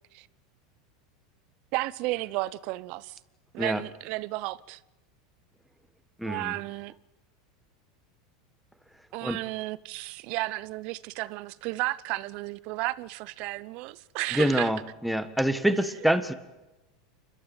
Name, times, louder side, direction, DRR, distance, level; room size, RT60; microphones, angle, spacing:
voice 1, 1.7-3.2 3.5-4.8 6.2-6.9 9.1-14.7 16.0-16.1, right 20 dB, 55° right, 0.8 m, -33 dB
voice 2, 6.2-6.5 9.2-9.4 14.3-16.3, equal, ahead, 1.6 m, -26 dB
29.0 x 12.5 x 9.2 m
hypercardioid pair, 100°, 2 cm